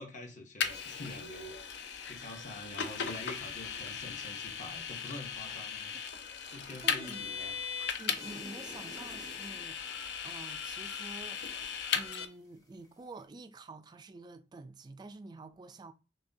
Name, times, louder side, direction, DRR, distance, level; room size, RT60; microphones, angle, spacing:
voice 1, 0.0-1.5 2.0-5.9 6.5-7.5, left 2 dB, 45° left, 0.9 m, -46 dB
Vehicle, 0.6-12.3, left 7 dB, 65° left, 0.5 m, -37 dB
voice 2, 6.1-7.2 8.0-9.8 10.2-11.4 11.9-15.9, right 3 dB, 25° right, 0.3 m, -49 dB
sound 1, 8.1-12.3 12.6-13.2, left 1 dB, 20° left, 0.7 m, -51 dB
6.0 x 2.2 x 2.7 m
head